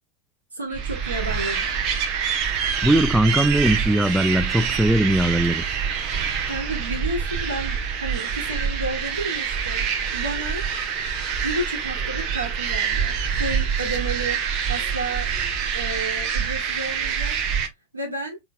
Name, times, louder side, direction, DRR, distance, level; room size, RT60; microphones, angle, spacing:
voice 1, 0.5-1.8 6.5-9.9 10.1-10.6 11.4-14.4 14.7-15.3 15.7-17.4 17.9-18.4, right 2 dB, 80° right, 1.9 m, -31 dB
sound 1, 0.7-17.7, right 7 dB, 40° right, 1.0 m, -26 dB
voice 2, 2.8-5.6, right 1 dB, 5° right, 0.3 m, -20 dB
4.0 x 3.8 x 2.2 m
figure-of-eight pair, 90°, 0 cm